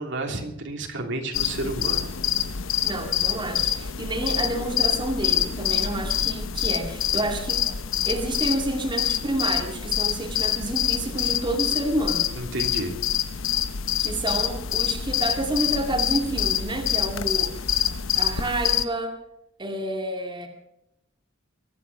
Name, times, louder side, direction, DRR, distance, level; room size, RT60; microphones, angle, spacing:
voice 1, 0.0-2.0 12.4-13.0, right 2 dB, 65° right, 3 dB, 2.9 m, -31 dB
sound 1, 1.3-18.8, left 10 dB, 85° left, 0.9 m, -26 dB
voice 2, 2.8-7.8 8.1-12.3 14.0-17.5 18.2-19.2 19.6-20.5, right 1 dB, 25° right, 2 dB, 2.4 m, -29 dB
23.0 x 9.9 x 5.9 m, 0.81 s
head